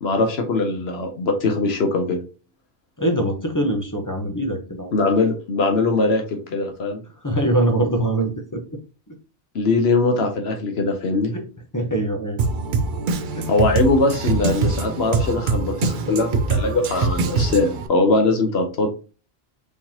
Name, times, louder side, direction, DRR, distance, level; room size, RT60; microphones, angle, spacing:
voice 1, 0.0-2.2 4.9-6.2 6.5-7.0 9.5-11.3 13.5-18.9, left 3 dB, 85° left, 4 dB, 1.1 m, -21 dB
voice 2, 3.0-5.0 7.2-8.8 9.1-9.2 11.3-11.5 11.7-12.4 13.4-13.5, right 1 dB, 20° left, 4 dB, 0.8 m, -23 dB
Drum kit, 12.4-17.9, right 4 dB, 60° right, 0.7 m, -23 dB
5.1 x 3.6 x 2.8 m, 0.34 s
omnidirectional pair, 1.0 m